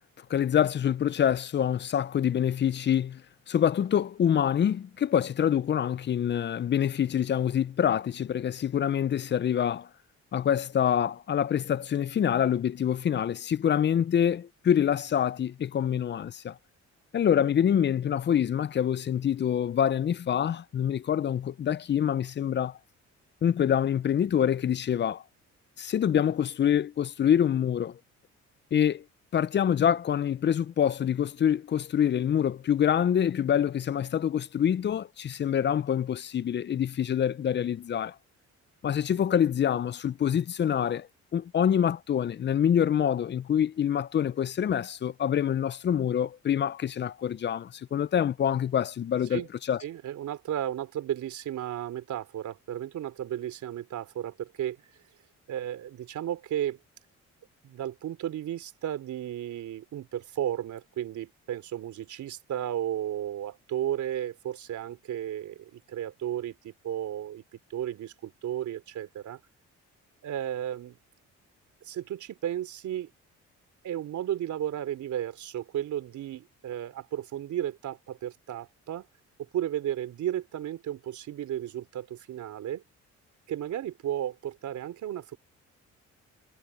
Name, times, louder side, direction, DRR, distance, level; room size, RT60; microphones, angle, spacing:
voice 1, 0.3-3.2 3.5-9.9 10.3-16.6 17.1-22.8 23.4-25.2 25.8-28.0 28.7-29.0 29.3-38.1 38.8-49.4 49.7-49.8, left 9 dB, 35° left, 0.5 m, -26 dB
voice 2, 49.8-54.8 55.5-56.8 57.6-67.4 67.7-69.4 70.2-71.0 71.8-73.1 73.8-79.1 79.4-82.8 83.5-85.4, right 11 dB, 70° right, 3.5 m, -34 dB
cardioid pair, 90°, 30 cm